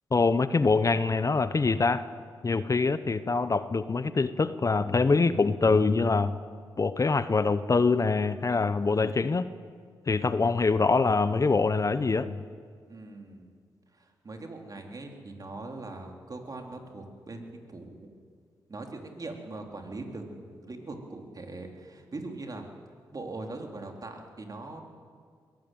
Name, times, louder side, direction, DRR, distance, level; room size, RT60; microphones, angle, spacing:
voice 1, 0.1-2.0 2.4-6.4 6.8-9.4 10.1-12.4, left 4 dB, 40° left, 13 dB, 0.9 m, -24 dB
voice 2, 12.9-13.5 13.9-18.1 18.7-22.6 23.1-24.8, right 2 dB, 45° right, 3 dB, 3.6 m, -41 dB
22.0 x 15.5 x 9.3 m, 2.1 s
supercardioid pair, 50°, 9 cm